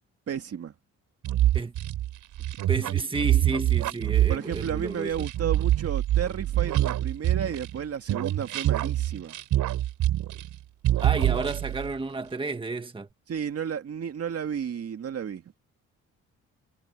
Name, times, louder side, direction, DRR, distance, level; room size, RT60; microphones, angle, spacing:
voice 1, 0.3-0.7 4.3-9.4 13.3-15.4, right 8 dB, 50° right, 2.3 m, -32 dB
sound 1, 1.2-7.8 8.1-10.6 10.8-11.9, right 13 dB, 85° right, 5.6 m, -25 dB
voice 2, 2.7-5.1 11.0-13.1, right 3 dB, 15° right, 1.6 m, -32 dB
cardioid pair, 90°, 30 cm